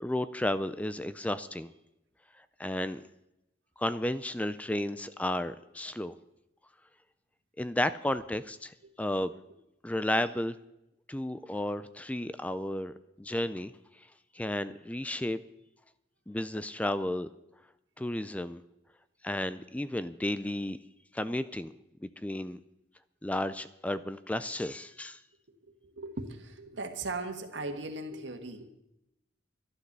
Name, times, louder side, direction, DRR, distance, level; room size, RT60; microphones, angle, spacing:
voice 1, 0.0-1.7 2.6-3.0 3.8-6.1 7.6-8.7 9.0-9.3 9.8-10.5 11.1-13.7 14.3-15.4 16.3-17.3 18.0-18.6 19.2-20.8 21.1-21.7 22.0-22.6 23.2-25.2, left 1 dB, 10° left, 13 dB, 0.4 m, -33 dB
voice 2, 25.8-28.7, right 2 dB, 80° right, 6 dB, 1.7 m, -38 dB
12.0 x 11.5 x 6.7 m, 0.87 s
head